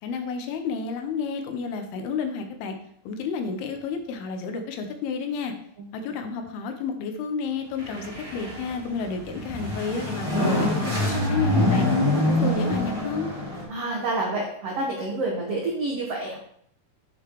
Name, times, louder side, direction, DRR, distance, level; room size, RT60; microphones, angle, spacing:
voice 1, 0.0-2.8 3.1-5.5 5.9-11.9 12.3-13.3, left 5 dB, 75° left, 6 dB, 2.7 m, -31 dB
sound 1, 7.7-13.6, left 1 dB, 10° right, 2.5 m, -25 dB
voice 2, 13.7-16.4, right 2 dB, 75° right, -3 dB, 1.4 m, -28 dB
7.8 x 7.1 x 3.1 m, 0.67 s
omnidirectional pair, 4.7 m